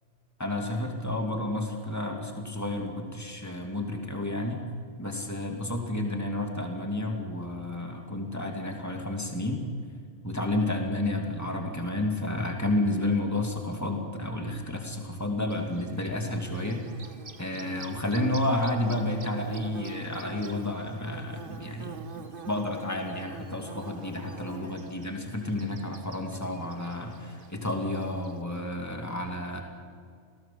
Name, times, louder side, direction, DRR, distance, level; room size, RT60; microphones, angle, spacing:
voice 1, 0.4-4.6 5.0-9.7 10.2-16.9 17.4-29.6, left 1 dB, 15° left, 2 dB, 2.7 m, -31 dB
Bird / Buzz, 15.5-28.4, right 5 dB, 45° right, 1.5 m, -46 dB
28.0 x 17.5 x 7.7 m, 2.1 s
omnidirectional pair, 1.3 m